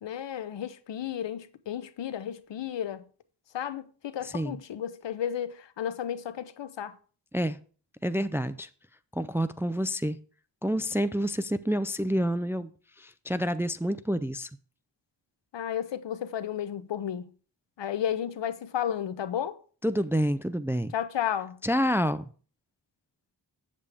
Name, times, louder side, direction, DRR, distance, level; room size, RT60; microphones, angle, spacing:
voice 1, 0.0-3.0 3.5-7.0 15.5-17.3 17.8-19.6 20.9-21.6, left 9 dB, 80° left, 0.7 m, -33 dB
voice 2, 4.2-4.6 7.3-7.6 8.0-8.7 9.1-10.2 10.6-12.7 13.0-14.5 19.8-20.9 21.6-22.3, equal, 5° right, 0.3 m, -28 dB
8.2 x 7.6 x 3.4 m
wide cardioid pair, 100°, 43 cm